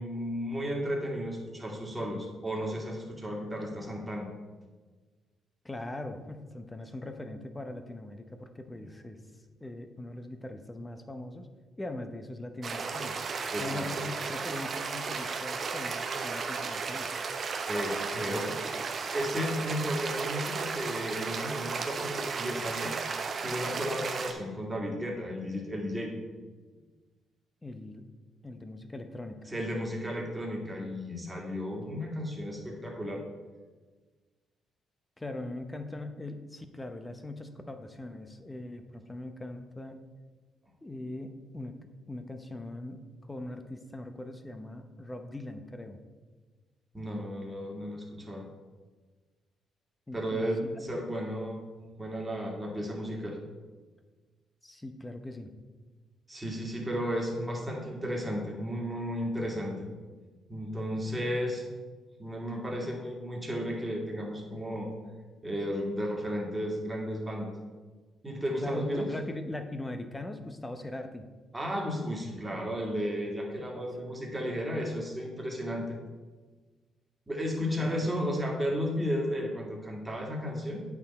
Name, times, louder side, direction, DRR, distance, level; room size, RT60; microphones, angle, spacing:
voice 1, 0.0-4.3 13.5-13.9 17.7-18.5 19.1-26.1 29.5-33.2 46.9-48.5 50.1-51.6 52.0-53.4 56.3-59.9 60.5-61.7 62.2-64.9 65.4-67.6 68.2-69.1 71.5-76.0 77.3-80.8, equal, 15° right, -1 dB, 2.1 m, -33 dB
voice 2, 5.6-9.2 9.6-11.5 11.8-13.2 13.6-17.2 27.6-28.1 28.4-29.4 35.2-40.0 40.8-41.8 42.1-46.0 50.1-50.8 54.6-55.5 68.6-71.2 73.7-74.2 77.8-77.9, left 2 dB, 15° left, 7 dB, 0.9 m, -41 dB
sound 1, 12.6-24.3, right 5 dB, 50° right, 0.8 m, -34 dB
8.6 x 6.0 x 4.3 m, 1.4 s
supercardioid pair, 65°, 0 cm